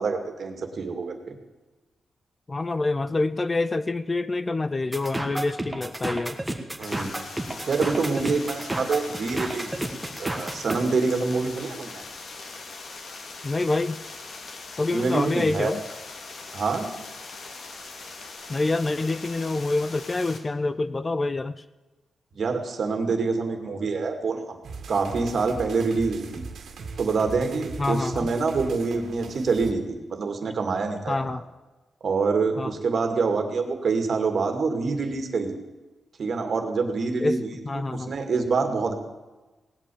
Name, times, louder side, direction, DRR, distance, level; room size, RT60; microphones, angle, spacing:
voice 1, 0.0-1.4 6.8-7.2 7.7-9.7 10.2-12.0 14.9-15.7 16.5-16.9 22.3-24.6 24.9-26.4 27.0-31.4 32.0-35.5 36.2-38.9, right 4 dB, 50° right, 6 dB, 2.2 m, -26 dB
voice 2, 2.5-6.4 13.4-14.0 14.8-15.8 18.5-21.6 27.8-28.3 31.1-31.4 32.6-32.7 37.2-37.4 37.6-38.1, left 2 dB, 25° left, 14 dB, 0.5 m, -26 dB
sound 1, 4.9-10.8, right 1 dB, 5° right, 1.5 m, -31 dB
sound 2, 6.8-20.4, left 3 dB, 55° left, 2.1 m, -41 dB
sound 3, 24.6-29.7, right 4 dB, 70° right, 2.1 m, -39 dB
18.0 x 8.8 x 8.6 m, 1.2 s
wide cardioid pair, 140°, 0 cm